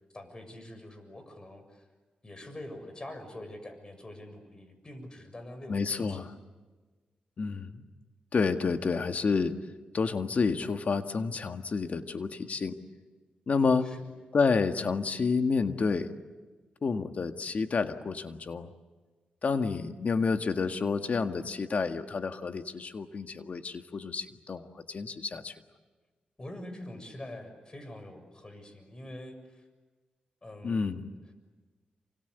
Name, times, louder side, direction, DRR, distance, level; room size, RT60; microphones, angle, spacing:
voice 1, 0.1-1.8 2.2-6.2 13.6-14.0 26.4-29.6 30.4-31.0, left 1 dB, 30° left, 8 dB, 6.9 m, -45 dB
voice 2, 5.7-6.2 7.4-7.8 8.3-9.5 9.9-12.8 13.5-13.9 14.3-16.1 16.8-18.7 19.4-25.5 30.6-31.1, left 4 dB, 55° left, 7 dB, 1.8 m, -29 dB
28.0 x 26.0 x 8.2 m, 1.3 s
cardioid pair, 70°, 3 cm